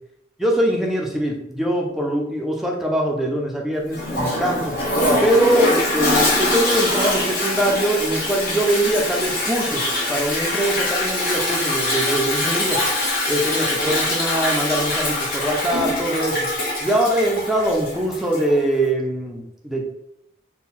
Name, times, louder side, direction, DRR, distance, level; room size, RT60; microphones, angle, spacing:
voice 1, 0.4-4.7 5.2-12.8 13.3-16.5 16.8-19.9, right 1 dB, ahead, -1 dB, 0.6 m, -22 dB
Toilet flush, 3.9-18.5, left 1 dB, 55° left, 1.4 m, -23 dB
3.9 x 2.3 x 4.2 m, 0.79 s
head